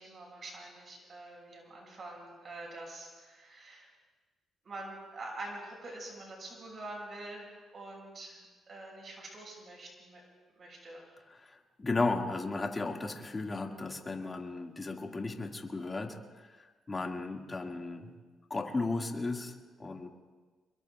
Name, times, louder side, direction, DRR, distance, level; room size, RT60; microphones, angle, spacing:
voice 1, 0.0-3.9 4.6-10.2 10.6-11.1, right 2 dB, 45° right, -1 dB, 6.0 m, -45 dB
voice 2, 11.3-18.1 18.5-19.5 19.8-20.1, left 3 dB, 25° left, 2 dB, 1.9 m, -35 dB
27.5 x 22.5 x 2.3 m, 1.3 s
cardioid pair, 90°, 0 cm